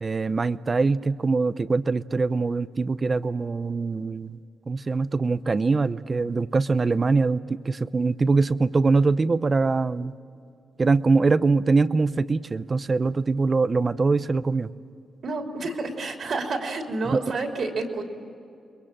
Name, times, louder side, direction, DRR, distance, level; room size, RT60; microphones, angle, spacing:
voice 1, 0.0-4.4 4.7-10.1 10.8-14.7 17.1-17.2, right 3 dB, 35° right, 15 dB, 0.7 m, -23 dB
voice 2, 15.2-18.0, right 3 dB, 60° right, 3 dB, 3.2 m, -29 dB
29.5 x 22.0 x 7.6 m, 2.5 s
cardioid pair, 85°, 0 cm